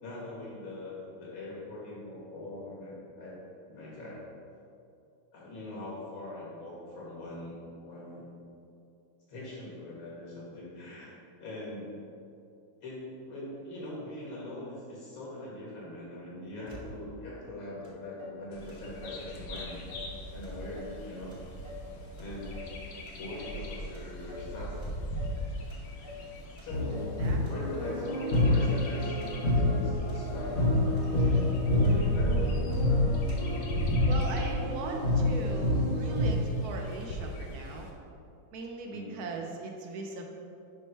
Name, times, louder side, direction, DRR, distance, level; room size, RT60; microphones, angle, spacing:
voice 1, 0.0-3.4 3.7-4.2 5.3-7.6 7.8-8.3 9.3-11.1 11.4-11.9 12.8-19.8 20.3-21.3 22.2-22.6 23.2-24.7 26.6-27.1 27.4-28.1 28.4-29.2 29.8-31.5 31.8-32.7 38.9-39.1, left 1 dB, 70° left, -6 dB, 2.4 m, -42 dB
Motor vehicle (road), 16.7-17.3 17.8-17.9 18.2-19.3 19.5-20.1 20.4-21.0 21.3-22.8 23.1-23.7 23.9-24.5 24.8-25.4 25.7-26.3 26.6-27.2 27.5-28.0 28.3-28.9 29.2-29.8 30.1-30.7 31.0-31.1 31.3-31.5 31.8-32.4 32.7-32.8 33.1-33.6, left 4 dB, 35° right, 1.2 m, -47 dB
Bird vocalization bird call bird song, 18.5-37.9, equal, 85° left, 1.8 m, -37 dB
sound 1, 26.7-36.3, left 1 dB, 50° left, 0.7 m, -27 dB
voice 2, 27.2-27.6 34.1-37.9 38.5-40.3, right 3 dB, 70° right, 2 dB, 0.9 m, -39 dB
7.3 x 3.3 x 5.4 m, 2.6 s
omnidirectional pair, 2.3 m